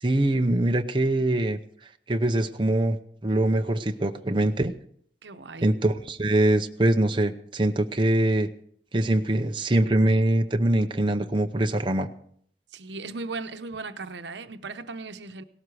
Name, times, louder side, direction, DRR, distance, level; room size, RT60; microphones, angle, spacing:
voice 1, 0.0-1.6 2.1-3.0 3.2-4.7 5.6-8.5 8.9-12.1, right 1 dB, 25° right, 5 dB, 0.7 m, -23 dB
voice 2, 5.2-5.7 12.7-15.4, right 3 dB, 80° right, 9 dB, 0.9 m, -37 dB
17.5 x 12.5 x 4.8 m, 0.63 s
head